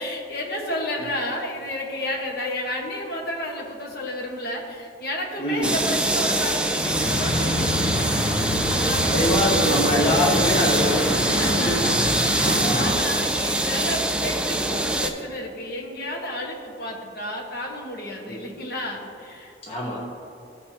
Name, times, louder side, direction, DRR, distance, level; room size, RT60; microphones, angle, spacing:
voice 1, 0.0-7.9 8.6-9.4 11.2-19.6, left 1 dB, 55° left, -1 dB, 1.3 m, -32 dB
voice 2, 5.4-5.7 8.9-11.1 11.5-11.8 12.4-12.9 18.3-18.4 19.6-20.0, equal, 35° left, -4 dB, 1.0 m, -24 dB
sound 1, 5.6-15.1, right 1 dB, 5° right, 0.4 m, -24 dB
sound 2, 6.8-13.0, left 1 dB, 75° left, 0.8 m, -27 dB
15.0 x 5.4 x 2.8 m, 2.7 s
head